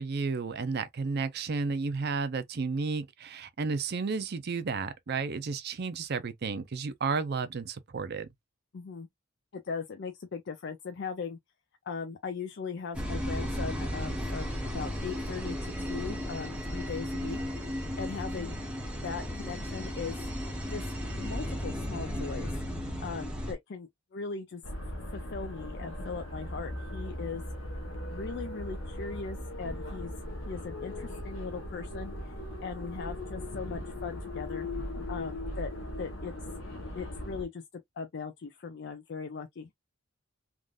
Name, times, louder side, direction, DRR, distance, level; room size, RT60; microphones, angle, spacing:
voice 1, 0.0-8.3, right 4 dB, 50° right, 0.5 m, -32 dB
voice 2, 8.7-9.1 9.5-11.4 11.8-17.4 18.0-18.6 19.0-20.3 20.7-22.5 23.0-24.6 25.1-27.4 28.1-30.1 30.5-32.3 32.6-34.7 35.1-35.7 36.0-36.3 36.9-37.6 38.0-39.7, left 5 dB, 55° left, 0.5 m, -39 dB
sound 1, 12.9-23.5, equal, 5° right, 0.8 m, -35 dB
sound 2, 24.6-37.5, left 1 dB, 70° left, 1.0 m, -38 dB
3.5 x 2.5 x 2.3 m
head